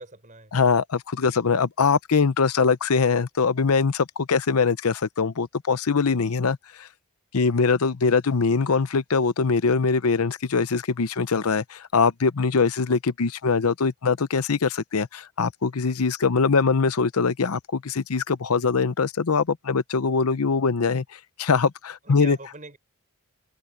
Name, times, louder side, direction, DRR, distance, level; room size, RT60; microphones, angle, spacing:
voice 1, 0.0-0.5 1.2-1.4 22.0-22.8, right 2 dB, 35° right, 5.8 m, -42 dB
voice 2, 0.5-6.9 7.3-22.4, left 5 dB, 85° left, 0.7 m, -22 dB
head